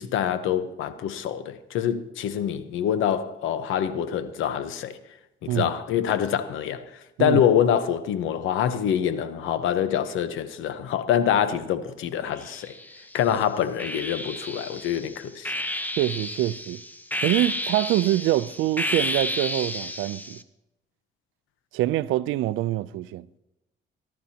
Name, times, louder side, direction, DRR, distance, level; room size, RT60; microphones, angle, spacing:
voice 1, 0.0-5.0 5.4-6.8 7.2-12.8 13.1-15.5, left 9 dB, 85° left, 1.0 m, -25 dB
sound 1, 12.4-13.2 13.8-20.4, left 1 dB, 10° left, 0.8 m, -31 dB
voice 2, 16.0-16.8 17.2-20.4 21.7-23.3, right 15 dB, 90° right, 0.5 m, -25 dB
23.0 x 11.5 x 2.9 m
cardioid pair, 90°, 20 cm